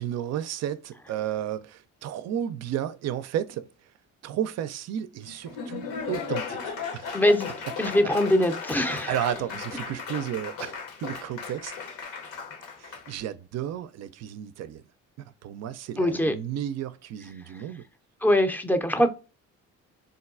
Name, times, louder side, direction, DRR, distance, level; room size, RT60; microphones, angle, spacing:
voice 1, 0.0-3.7 4.2-7.1 8.7-10.7 11.0-11.7 12.8-14.8 15.4-17.8, right 10 dB, 50° right, 0.4 m, -33 dB
Laughter / Applause, 5.3-13.1, left 6 dB, 75° left, 0.9 m, -36 dB
voice 2, 7.1-7.5 7.8-9.1 16.0-16.3 18.2-19.1, left 1 dB, 5° left, 0.5 m, -22 dB
3.6 x 2.2 x 2.4 m
supercardioid pair, 70°, 33 cm